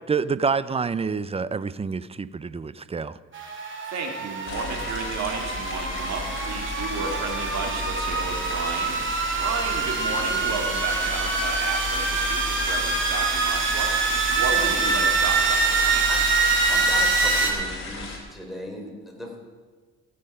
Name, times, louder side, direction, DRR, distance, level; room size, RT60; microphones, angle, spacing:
voice 1, 0.1-3.2, right 5 dB, 20° right, 0.4 m, -27 dB
sound 1, 3.3-17.5, right 4 dB, 40° right, 2.1 m, -25 dB
voice 2, 3.8-9.0 9.4-13.9 14.3-16.1, right 4 dB, 65° right, 2.4 m, -33 dB
sound 2, 4.4-18.2, left 3 dB, 40° left, 3.3 m, -34 dB
voice 3, 14.5-15.0 16.1-16.2 16.7-19.4, equal, ahead, 3.5 m, -37 dB
17.0 x 7.7 x 5.4 m
cardioid pair, 90°, 30 cm